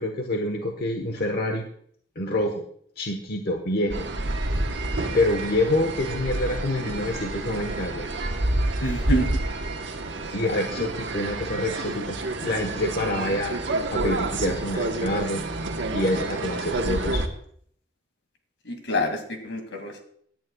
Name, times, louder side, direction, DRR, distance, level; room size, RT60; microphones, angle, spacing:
voice 1, 0.0-1.6 2.1-2.6 3.0-4.1 5.1-8.1 10.3-13.5 13.9-15.4 15.9-17.2, left 1 dB, 55° left, 3 dB, 1.2 m, -27 dB
sound 1, 3.9-17.3, right 2 dB, 85° right, 1.3 m, -29 dB
voice 2, 8.8-9.4 10.8-10.9 18.7-20.0, equal, 80° left, 5 dB, 2.3 m, -27 dB
17.5 x 10.5 x 2.3 m, 0.63 s
head